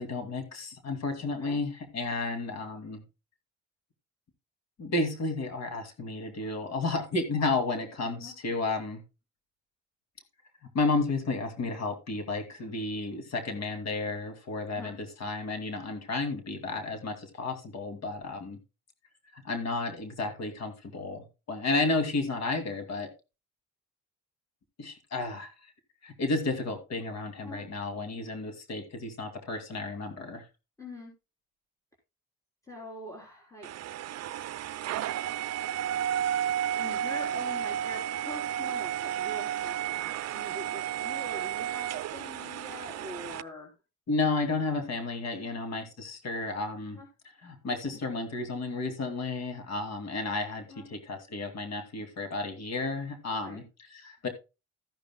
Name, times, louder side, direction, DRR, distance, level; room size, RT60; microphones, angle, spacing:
voice 1, 0.0-3.0 4.8-9.0 10.7-18.6 19.3-23.1 24.8-25.5 26.0-30.4 44.1-47.0 47.4-54.3, left 3 dB, 60° left, 6 dB, 2.5 m, -32 dB
voice 2, 30.8-31.1 32.7-33.9 35.8-35.9 36.7-40.0 40.3-43.7 47.0-47.1 50.7-50.9 53.3-53.6, left 1 dB, 10° left, 0 dB, 3.7 m, -44 dB
sound 1, 33.6-43.4, right 11 dB, 60° right, 0.5 m, -32 dB
13.5 x 10.5 x 2.2 m, 0.28 s
cardioid pair, 90°, 30 cm